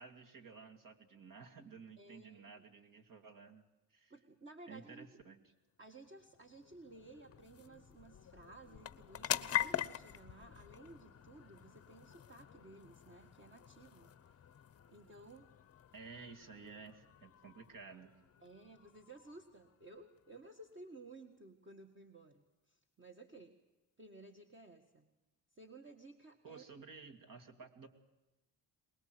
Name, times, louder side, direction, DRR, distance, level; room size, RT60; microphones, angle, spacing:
voice 1, 0.0-3.7 3.9-4.1 4.7-5.4 15.9-18.1 26.4-27.9, right 5 dB, 45° right, 7 dB, 2.6 m, -54 dB
voice 2, 2.0-2.6 4.1-5.2 5.8-14.1 14.9-15.5 18.4-23.6 24.0-25.1 25.5-26.6, right 2 dB, 25° right, 4 dB, 1.9 m, -56 dB
sound 1, 5.8-20.7, left 11 dB, 30° left, 0.9 m, -45 dB
23.5 x 21.0 x 7.9 m, 1.0 s
cardioid pair, 125°, 45 cm